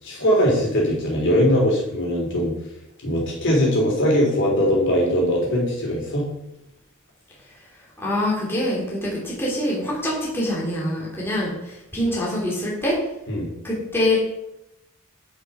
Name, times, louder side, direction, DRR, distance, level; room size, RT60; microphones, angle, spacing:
voice 1, 0.0-2.5 3.0-6.3 13.3-13.5, equal, 55° left, -2 dB, 3.4 m, -20 dB
voice 2, 8.0-13.0 13.6-14.2, left 1 dB, 10° left, -5 dB, 2.8 m, -25 dB
11.0 x 5.5 x 5.5 m, 0.84 s
head